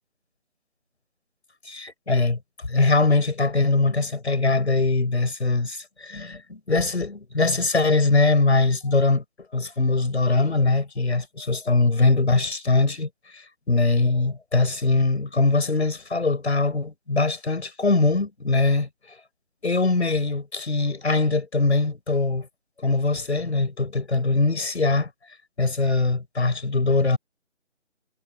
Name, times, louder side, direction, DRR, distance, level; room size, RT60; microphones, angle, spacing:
voice 1, 1.7-2.4 2.7-9.2 9.5-13.1 13.7-18.9 19.6-22.5 22.8-25.1 25.6-27.2, left 3 dB, 65° left, 7.0 m, -22 dB
figure-of-eight pair, 165°, 36 cm